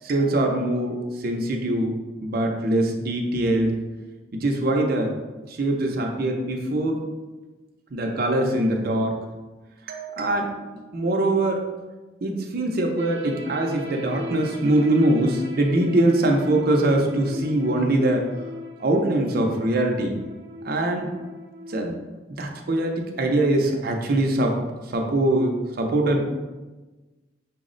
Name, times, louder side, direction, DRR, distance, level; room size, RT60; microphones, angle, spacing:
voice 1, 0.0-1.9 2.2-3.7 4.3-5.1 5.5-7.0 7.9-9.2 9.9-11.6 12.2-18.3 18.8-20.2 20.6-21.1 21.7-21.9 22.4-24.5 24.9-26.2, right 1 dB, 55° right, 2 dB, 0.5 m, -23 dB
sound 1, 13.0-21.9, left 2 dB, 90° right, 0.7 m, -38 dB
5.7 x 2.0 x 3.7 m, 1.2 s
head